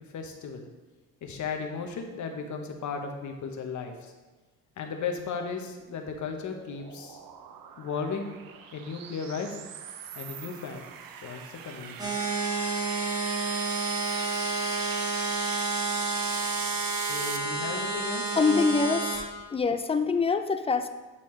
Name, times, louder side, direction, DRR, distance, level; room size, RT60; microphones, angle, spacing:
voice 1, 0.1-0.7 1.2-4.1 4.8-7.2 7.8-8.3 8.7-9.6 10.2-10.8 11.2-12.1 17.1-18.7, left 5 dB, 55° left, 4 dB, 0.9 m, -35 dB
sound 1, 5.8-17.4, right 8 dB, 75° right, 0.6 m, -40 dB
sound 2, 12.0-19.2, right 3 dB, 10° right, 1.6 m, -30 dB
voice 2, 18.4-19.2 19.5-20.9, left 4 dB, 20° left, 9 dB, 0.3 m, -25 dB
8.8 x 4.1 x 3.2 m, 1.2 s
cardioid pair, 95°, 35 cm